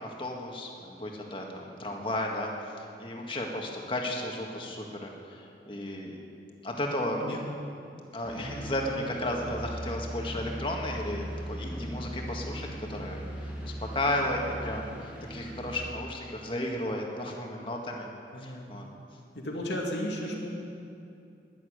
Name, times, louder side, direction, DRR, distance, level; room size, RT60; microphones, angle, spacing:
voice 1, 0.0-2.5 2.8-6.2 6.6-7.4 8.1-18.1 18.4-18.9, left 1 dB, 30° left, 0 dB, 1.8 m, -34 dB
sound 1, 8.2-15.8, equal, 10° right, 1.8 m, -39 dB
voice 2, 8.3-8.7 18.3-18.8 19.3-20.5, equal, 85° left, -1 dB, 2.6 m, -35 dB
11.5 x 11.0 x 9.4 m, 2.6 s
head